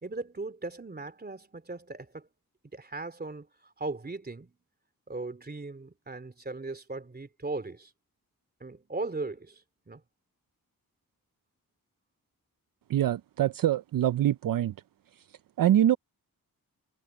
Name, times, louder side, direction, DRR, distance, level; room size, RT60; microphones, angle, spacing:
voice 1, 0.0-2.3 2.7-4.5 5.1-7.9 8.6-10.0, right 3 dB, 25° right, 3.2 m, -38 dB
voice 2, 12.9-14.7 15.1-16.0, right 11 dB, 65° right, 0.5 m, -25 dB
wide cardioid pair, 120°, 36 cm